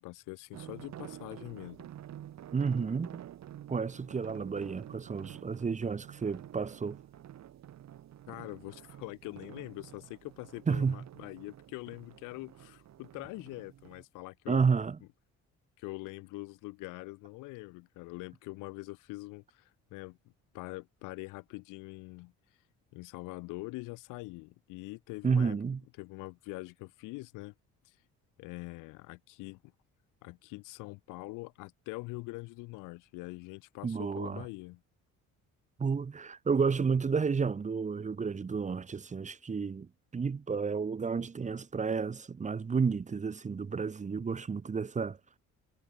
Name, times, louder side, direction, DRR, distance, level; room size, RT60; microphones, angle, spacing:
voice 1, 0.0-1.9 8.3-14.7 15.8-20.2 20.5-22.3 22.9-25.6 26.0-27.5 27.8-28.0 28.4-29.6 30.2-34.8, left 23 dB, 90° left, 0.8 m, -44 dB
sound 1, 0.5-14.0, right 11 dB, 60° right, 1.8 m, -49 dB
voice 2, 2.5-3.2 3.7-7.0 10.7-11.0 14.5-15.0 25.2-25.8 33.8-34.4 35.8-45.2, right 5 dB, 25° right, 0.8 m, -31 dB
cardioid pair, 85°, 30 cm